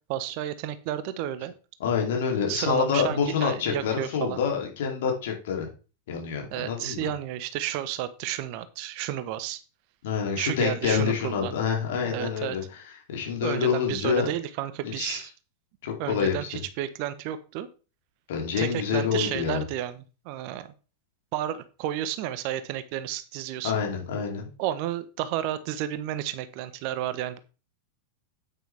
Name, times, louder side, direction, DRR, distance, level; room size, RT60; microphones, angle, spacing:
voice 1, 0.1-1.5 2.5-4.4 6.5-9.6 10.4-11.5 12.0-12.6 13.4-15.3 16.0-17.7 18.6-20.7 21.3-23.7 24.6-27.4, right 12 dB, 45° right, 13 dB, 0.9 m, -32 dB
voice 2, 1.8-5.7 6.1-7.1 10.0-12.8 13.1-14.3 14.8-15.2 15.8-16.5 18.3-19.6 23.6-24.5, left 7 dB, 55° left, 1 dB, 3.0 m, -27 dB
9.1 x 9.1 x 3.4 m, 0.34 s
figure-of-eight pair, 90°, 0 cm